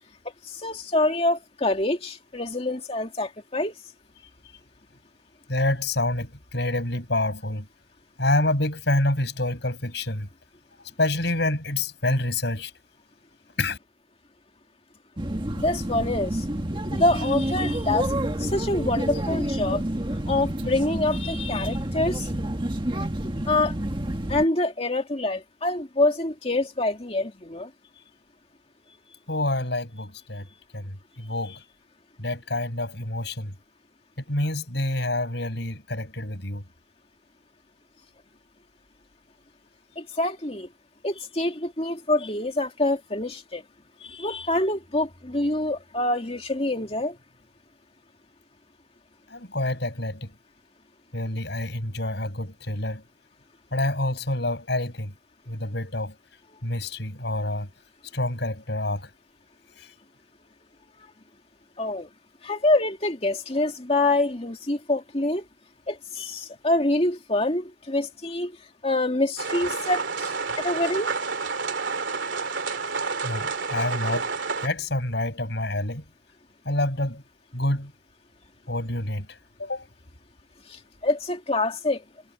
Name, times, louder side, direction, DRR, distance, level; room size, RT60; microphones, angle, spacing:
voice 1, 0.5-3.7 15.6-16.4 16.9-18.1 18.4-19.8 20.3-22.3 23.5-23.7 24.3-27.7 40.0-40.7 41.0-43.6 44.0-47.2 61.8-62.1 62.4-65.4 65.9-68.5 68.8-71.1 80.7-82.0, left 2 dB, 30° left, 2.5 m, -26 dB
voice 2, 5.5-7.7 8.2-10.3 11.0-12.7 13.6-13.8 29.3-30.5 30.7-31.6 32.2-33.5 34.2-36.6 49.3-50.3 51.1-53.0 53.7-55.1 55.5-56.1 56.6-57.7 58.1-59.1 59.8-59.9 73.2-74.3 74.6-76.0 76.6-77.2 77.5-77.9 78.7-79.9, left 1 dB, 60° left, 6.6 m, -27 dB
sound 1, 15.2-24.5, right 1 dB, 25° right, 1.7 m, -29 dB
sound 2, 69.4-74.7, right 4 dB, 70° right, 2.9 m, -29 dB
head